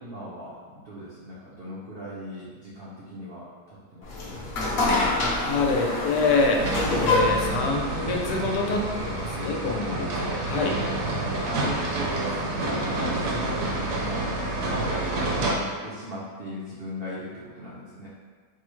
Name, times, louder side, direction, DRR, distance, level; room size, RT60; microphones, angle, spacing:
voice 1, 0.0-4.5 11.3-18.1, equal, 80° right, -8 dB, 0.5 m, -38 dB
sound 1, 4.0-9.3, left 2 dB, 55° left, 0.7 m, -27 dB
voice 2, 5.1-6.6 7.0-10.8, left 4 dB, 80° left, 0 dB, 1.2 m, -26 dB
sound 2, 6.6-15.5, right 2 dB, 65° right, 0.9 m, -28 dB
4.6 x 2.0 x 3.0 m, 1.5 s
omnidirectional pair, 1.8 m